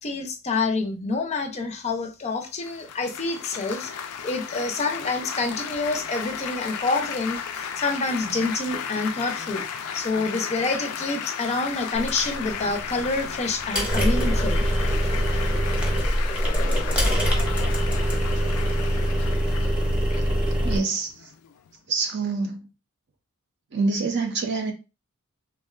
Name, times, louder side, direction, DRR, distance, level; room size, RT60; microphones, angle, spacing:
voice 1, 0.0-3.9 4.2-9.7 9.9-14.9, left 3 dB, 30° left, 0.4 m, -27 dB
Laughter / Applause / Chatter, 2.6-21.8, left 7 dB, 90° left, 0.4 m, -35 dB
sound 1, 11.9-20.8, equal, 5° right, 0.8 m, -24 dB
voice 2, 20.6-21.1 21.9-22.6 23.7-24.7, right 4 dB, 50° right, 0.6 m, -25 dB
3.5 x 2.1 x 2.3 m
head